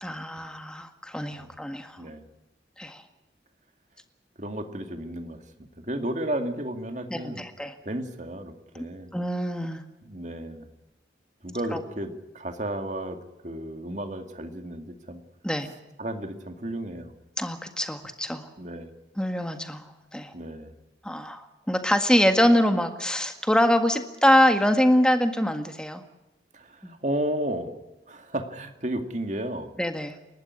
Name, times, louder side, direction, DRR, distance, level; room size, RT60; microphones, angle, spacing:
voice 1, 0.0-2.0 2.8-3.0 7.1-7.7 9.1-9.8 11.7-11.8 15.4-15.7 17.4-18.4 19.2-19.8 20.1-20.3 21.0-26.0 26.8-27.0 29.8-30.2, equal, 5° left, 7 dB, 1.7 m, -24 dB
voice 2, 4.4-7.4 7.8-9.1 10.0-10.7 11.4-13.2 13.4-15.2 16.0-17.1 18.6-18.9 20.3-20.7 26.5-27.7 28.1-29.7, right 1 dB, 40° right, 7 dB, 2.2 m, -33 dB
29.5 x 12.0 x 9.6 m, 1.0 s
head